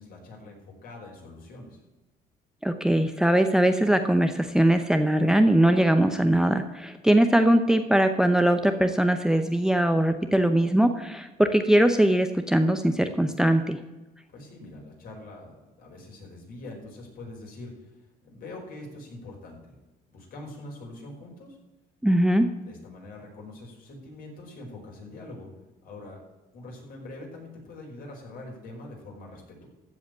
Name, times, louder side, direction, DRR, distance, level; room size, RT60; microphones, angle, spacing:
voice 1, 0.0-1.8 14.3-15.5 15.8-17.9 18.2-19.8 20.1-21.6 22.6-25.5 25.8-26.2 26.5-29.7, left 2 dB, 60° left, -1 dB, 5.2 m, -43 dB
voice 2, 2.6-13.8 22.0-22.5, right 1 dB, 5° right, 8 dB, 0.7 m, -21 dB
15.0 x 5.0 x 9.4 m, 1.1 s
cardioid pair, 110°, 17 cm